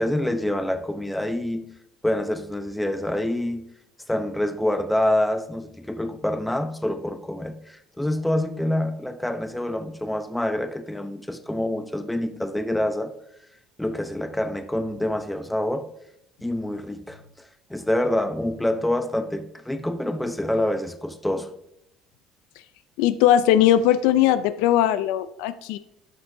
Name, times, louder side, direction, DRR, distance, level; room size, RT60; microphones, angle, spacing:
voice 1, 0.0-1.7 2.0-3.6 4.1-13.1 13.8-15.9 16.4-21.5, left 1 dB, 5° left, 0.8 m, -26 dB
voice 2, 23.0-25.8, left 11 dB, 85° left, 0.4 m, -19 dB
12.0 x 6.0 x 2.7 m
supercardioid pair, 100°, 0 cm